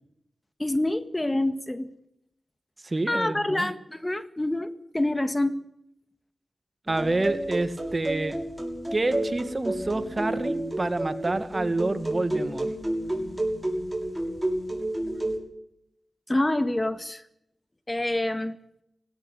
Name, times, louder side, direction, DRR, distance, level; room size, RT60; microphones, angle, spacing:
voice 1, 0.6-1.9 3.1-5.7 16.3-17.2 17.9-18.6, left 1 dB, 25° left, 11 dB, 1.7 m, -27 dB
voice 2, 2.8-3.7 6.9-8.4 8.9-12.7, right 2 dB, 40° right, 11 dB, 2.1 m, -28 dB
sound 1, 6.9-15.4, right 1 dB, 10° right, 6.5 m, -30 dB
17.5 x 17.5 x 9.0 m, 0.78 s
cardioid pair, 45°, 0 cm